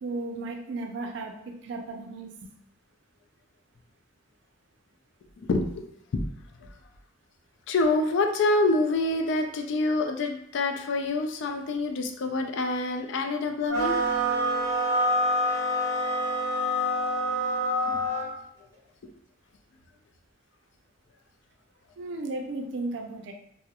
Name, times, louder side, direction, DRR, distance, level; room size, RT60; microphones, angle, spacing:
voice 1, 0.0-2.5 22.0-23.3, right 2 dB, 65° right, 3 dB, 0.4 m, -35 dB
voice 2, 7.7-14.0 17.9-18.0, left 2 dB, 65° left, 4 dB, 0.3 m, -26 dB
sound 1, 13.7-18.3, equal, 20° left, 1.0 m, -26 dB
2.3 x 2.1 x 2.8 m, 0.71 s
head